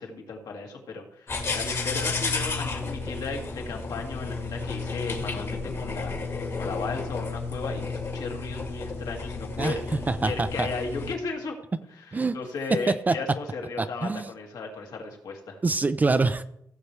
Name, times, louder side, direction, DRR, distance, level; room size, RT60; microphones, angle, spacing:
voice 1, 0.0-6.2 6.6-11.6 11.8-15.6, left 4 dB, 70° left, 1 dB, 2.2 m, -35 dB
sound 1, 1.3-11.1, left 4 dB, 40° left, 1.8 m, -32 dB
voice 2, 10.1-10.7 12.1-12.3 13.1-13.2 13.8-14.3 15.6-16.4, right 3 dB, 25° right, 11 dB, 0.5 m, -25 dB
16.5 x 6.8 x 3.3 m, 0.77 s
cardioid pair, 90°, 7 cm